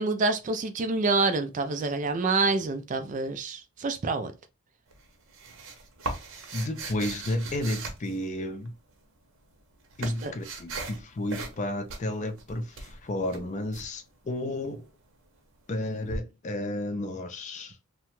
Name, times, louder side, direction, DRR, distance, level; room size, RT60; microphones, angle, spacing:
voice 1, 0.0-4.3 10.0-10.3, right 3 dB, 35° right, 0.3 m, -27 dB
sound 1, 4.9-8.7 9.5-11.0 11.3-11.6 11.9-13.9 16.1-16.2, right 3 dB, 65° right, 0.7 m, -38 dB
voice 2, 6.5-8.7 10.0-14.9 15.7-17.9, left 1 dB, 35° left, 0.4 m, -32 dB
2.8 x 2.2 x 2.9 m
head